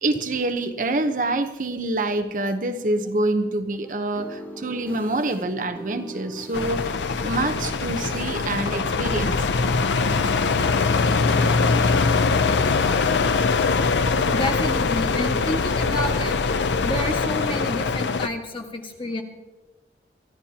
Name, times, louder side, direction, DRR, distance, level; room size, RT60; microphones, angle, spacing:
voice 1, 0.0-6.9 7.2-9.5, right 2 dB, 45° right, 8 dB, 0.9 m, -26 dB
sound 1, 3.7-16.2, equal, 10° left, 2.1 m, -42 dB
sound 2, 6.5-18.3, left 4 dB, 90° left, 0.6 m, -22 dB
voice 2, 14.3-16.5 16.8-19.2, left 1 dB, 30° left, 2 dB, 1.6 m, -29 dB
23.5 x 14.0 x 2.9 m, 1.1 s
head